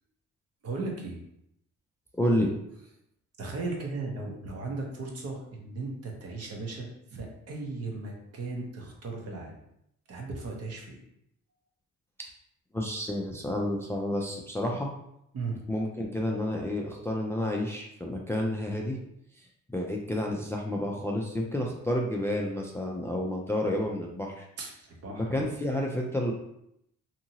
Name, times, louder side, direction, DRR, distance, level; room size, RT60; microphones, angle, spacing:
voice 1, 0.6-1.2 3.4-9.5 10.1-11.0 15.3-15.6 24.6-25.3, right 3 dB, 55° right, 0 dB, 0.8 m, -36 dB
voice 2, 2.1-2.5 12.7-14.9 15.7-19.0 19.7-24.5 25.1-26.3, left 1 dB, 10° left, 0 dB, 0.3 m, -30 dB
2.8 x 2.6 x 2.8 m, 0.77 s
cardioid pair, 90°, 30 cm